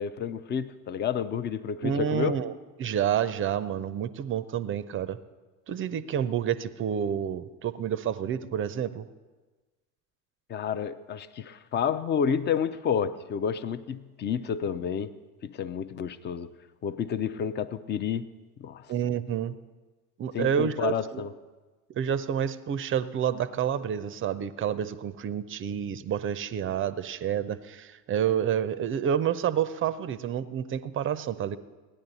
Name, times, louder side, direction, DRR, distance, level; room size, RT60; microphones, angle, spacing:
voice 1, 0.0-2.4 10.5-15.1 15.4-16.5 16.8-18.2 18.6-18.9 20.3-21.3, left 7 dB, 25° left, 14 dB, 0.5 m, -30 dB
voice 2, 1.8-2.5 2.8-5.2 5.7-9.1 18.9-19.5 20.2-21.2 21.9-31.6, right 9 dB, 30° right, 15 dB, 0.5 m, -29 dB
16.0 x 10.0 x 4.0 m, 1.3 s
figure-of-eight pair, 65°, 44 cm